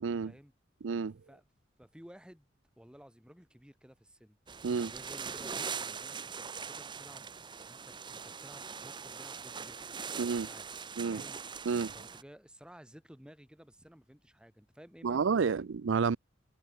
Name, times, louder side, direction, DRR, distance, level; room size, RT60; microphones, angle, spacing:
voice 1, 0.0-0.3 0.8-1.1 4.6-4.9 10.2-10.5 11.0-11.2 11.7-11.9 15.0-16.2, right 5 dB, 70° right, 0.5 m, -30 dB
voice 2, 1.8-2.5 2.8-4.4 4.8-9.8 10.2-10.7 11.1-11.4 11.9-15.7, equal, 5° right, 1.9 m, -55 dB
sound 1, 4.5-12.2, right 6 dB, 25° right, 0.8 m, -42 dB
open air
head